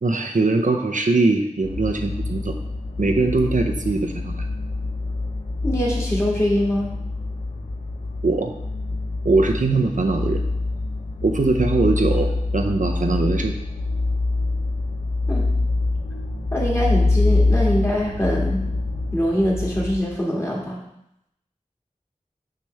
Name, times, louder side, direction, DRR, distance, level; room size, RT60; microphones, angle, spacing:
voice 1, 0.0-2.6 3.0-4.4 8.2-8.5 9.2-10.4 11.2-13.6, right 3 dB, 75° right, 3 dB, 0.6 m, -21 dB
sound 1, 1.6-20.0, left 2 dB, 75° left, 0.9 m, -25 dB
voice 2, 5.6-6.9 15.3-15.4 16.5-18.6 19.1-20.8, equal, 20° left, -4 dB, 2.0 m, -23 dB
6.3 x 5.9 x 3.3 m, 0.80 s
wide cardioid pair, 45°, 13 cm